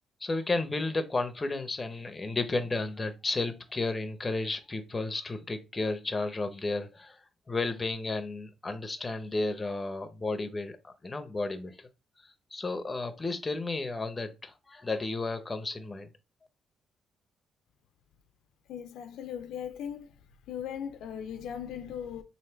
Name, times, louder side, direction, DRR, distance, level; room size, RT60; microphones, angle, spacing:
voice 1, 0.2-7.2 7.5-11.8 12.2-16.1, left 3 dB, 25° left, 0.7 m, -33 dB
voice 2, 18.7-20.2 20.5-22.2, left 8 dB, 85° left, 0.5 m, -38 dB
3.2 x 2.7 x 4.5 m
cardioid pair, 90°, 0 cm